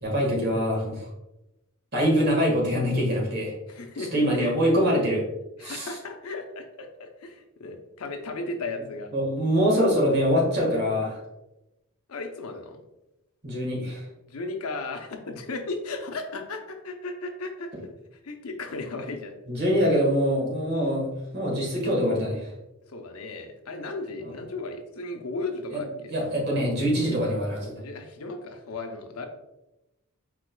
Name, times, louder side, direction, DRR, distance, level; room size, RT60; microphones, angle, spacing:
voice 1, 0.0-1.1 1.9-3.5 4.1-5.2 5.6-5.9 9.1-11.2 13.4-14.0 19.5-22.5 25.7-25.8 26.1-27.7, equal, 50° right, -2 dB, 1.6 m, -24 dB
voice 2, 3.7-4.7 5.6-9.1 12.1-12.8 14.3-17.7 18.2-19.3 22.9-26.1 27.8-29.3, left 3 dB, 85° left, 4 dB, 0.7 m, -35 dB
4.7 x 4.7 x 2.2 m, 0.94 s
head